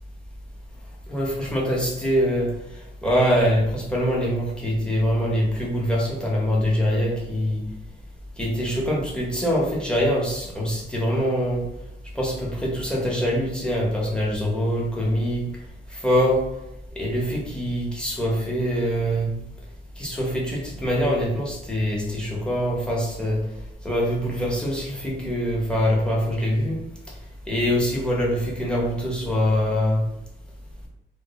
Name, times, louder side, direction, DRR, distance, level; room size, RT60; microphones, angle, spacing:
voice 1, 1.1-2.5 3.0-7.6 8.4-11.6 12.1-15.4 15.9-16.4 17.0-19.3 20.0-23.4 23.8-26.8 27.5-30.0, equal, 5° left, -4 dB, 0.8 m, -24 dB
2.1 x 2.0 x 2.9 m, 0.86 s
cardioid pair, 90°, 20 cm